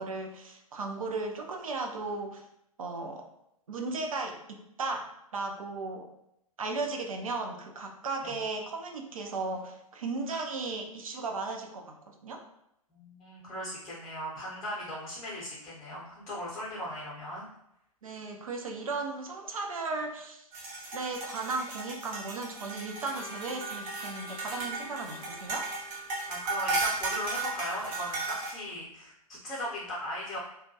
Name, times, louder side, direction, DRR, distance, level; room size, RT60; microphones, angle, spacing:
voice 1, 0.0-2.4 2.8-3.3 3.7-6.1 6.6-12.4 18.0-20.5 20.9-25.7, right 3 dB, 65° right, 3 dB, 0.5 m, -36 dB
voice 2, 12.9-17.5 26.3-30.4, equal, 20° left, -6 dB, 0.7 m, -38 dB
sound 1, 20.5-28.5, right 3 dB, 25° right, 0.7 m, -35 dB
Trumpet, 23.1-27.2, left 5 dB, 85° left, 0.4 m, -51 dB
2.3 x 2.1 x 2.7 m, 0.80 s
figure-of-eight pair, 110°, 19 cm